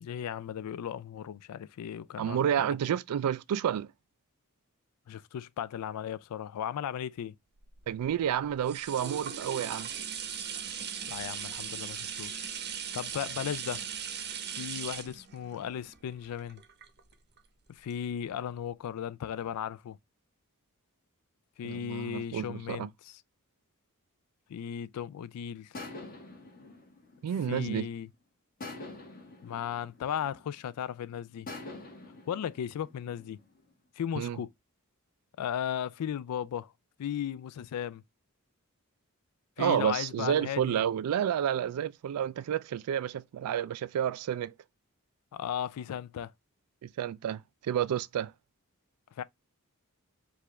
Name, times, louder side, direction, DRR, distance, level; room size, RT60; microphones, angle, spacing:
voice 1, 0.0-2.7 5.1-7.3 11.1-12.5 12.9-13.8 14.5-16.6 17.7-20.0 21.6-23.2 24.5-25.8 27.5-28.1 29.4-31.5 32.3-33.4 34.0-34.5 35.4-36.7 37.0-38.0 39.6-40.8 45.3-46.3 49.2-49.3, left 9 dB, 85° left, 0.3 m, -36 dB
voice 2, 2.2-3.9 7.9-9.9 21.6-22.9 27.2-27.8 34.2-34.4 39.6-44.5 46.8-48.3, right 9 dB, 80° right, 0.3 m, -30 dB
sound 1, 7.6-17.4 17.9-18.0, right 8 dB, 50° right, 0.7 m, -39 dB
sound 2, 25.7-28.0 28.6-30.8 31.5-33.7, left 2 dB, 40° left, 1.5 m, -46 dB
4.7 x 2.4 x 3.2 m
head